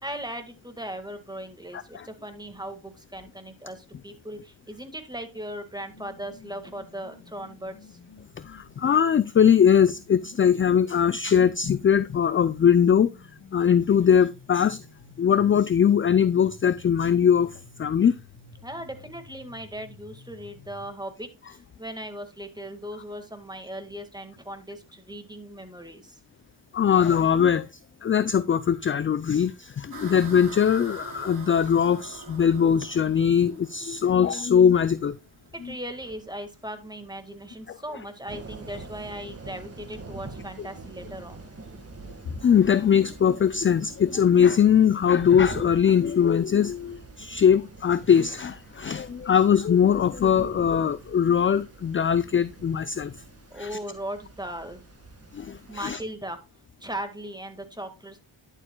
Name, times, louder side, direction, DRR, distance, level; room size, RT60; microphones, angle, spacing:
voice 1, 0.0-8.0 18.6-26.2 35.5-41.5 53.5-54.8 55.7-56.4 56.8-58.2, right 1 dB, 10° right, 1.8 m, -38 dB
sound 1, 5.9-20.9, left 5 dB, 65° left, 1.6 m, -51 dB
voice 2, 8.4-13.1 13.5-14.8 15.2-18.1 26.7-27.7 28.0-35.2 37.7-37.8 42.4-53.1 53.6-53.8 55.3-56.0, left 8 dB, 30° left, 0.3 m, -21 dB
sound 2, 29.9-39.1, right 3 dB, 50° right, 3.2 m, -46 dB
sound 3, 38.3-56.0, right 3 dB, 30° right, 1.8 m, -45 dB
11.0 x 7.3 x 2.3 m
cardioid pair, 60°, 48 cm